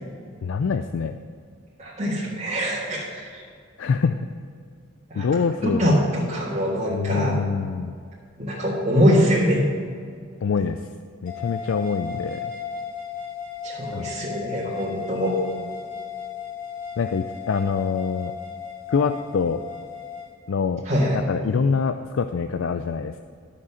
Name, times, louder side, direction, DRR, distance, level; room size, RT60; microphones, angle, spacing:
voice 1, 0.4-1.2 3.8-4.2 5.2-6.0 6.9-7.9 10.4-10.8 11.2-12.5 13.9-14.1 17.0-18.3 18.9-19.6 20.5-20.9 21.1-23.2, left 5 dB, 75° left, 9 dB, 0.4 m, -25 dB
voice 2, 1.8-3.3 5.1-5.3 5.6-7.4 8.4-9.6 13.6-15.4 20.8-21.2, equal, 35° right, -9 dB, 1.8 m, -23 dB
sound 1, 11.3-20.3, left 7 dB, 40° left, 2.2 m, -35 dB
12.5 x 5.8 x 6.3 m, 2.1 s
head